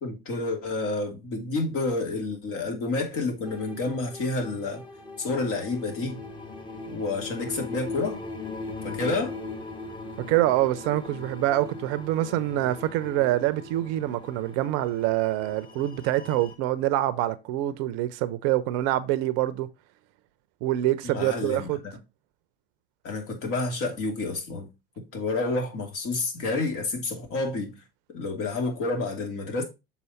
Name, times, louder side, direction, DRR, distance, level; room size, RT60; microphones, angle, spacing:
voice 1, 0.0-4.8 5.2-6.2 6.9-8.2 8.8-9.4 21.0-21.7 23.0-24.7 25.1-27.7 28.1-29.6, left 3 dB, 45° left, 2.7 m, -29 dB
sound 1, 3.5-16.5, left 2 dB, 15° left, 1.6 m, -40 dB
voice 2, 10.2-19.7 20.6-21.8, right 14 dB, 50° right, 0.7 m, -25 dB
6.8 x 4.4 x 4.2 m
hypercardioid pair, 90°, 30 cm